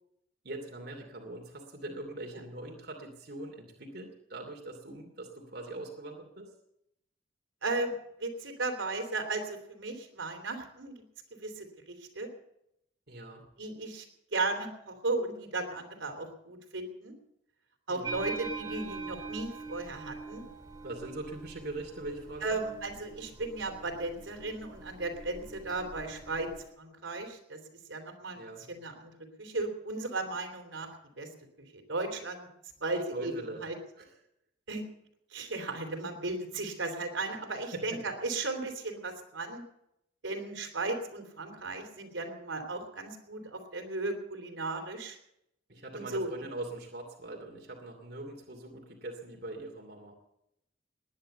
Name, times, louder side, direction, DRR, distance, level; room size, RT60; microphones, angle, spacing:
voice 1, 0.4-6.5 13.1-13.5 17.9-18.2 20.8-22.6 28.4-28.6 33.1-33.6 34.0-34.1 37.7-38.0 45.7-50.1, right 2 dB, 55° right, 1 dB, 2.7 m, -42 dB
voice 2, 7.6-7.9 8.2-11.0 11.3-12.3 13.6-14.0 14.3-17.1 17.9-20.4 22.4-26.5 26.8-27.6 27.9-29.1 29.4-30.9 31.2-31.3 31.6-32.5 32.8-33.3 33.6-33.7 34.7-34.9 35.3-39.6 40.2-45.2 45.9-46.3, right 3 dB, 85° right, 4 dB, 3.4 m, -35 dB
sound 1, 18.0-26.7, right 3 dB, 20° right, 2.3 m, -43 dB
20.0 x 10.5 x 6.9 m, 0.79 s
head